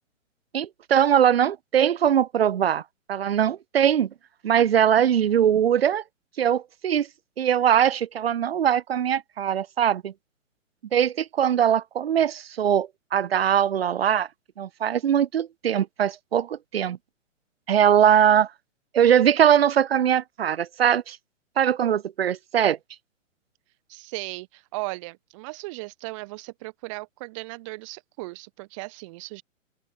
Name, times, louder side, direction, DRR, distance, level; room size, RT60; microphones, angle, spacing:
voice 1, 0.5-2.8 3.1-4.1 4.4-6.0 6.4-7.1 7.4-10.1 10.9-14.3 14.6-17.0 17.7-18.5 18.9-21.2 21.6-22.8, right 9 dB, 50° right, 0.5 m, -21 dB
voice 2, 23.9-29.4, right 24 dB, 25° right, 1.1 m, -37 dB
open air
figure-of-eight pair, 120°, 39 cm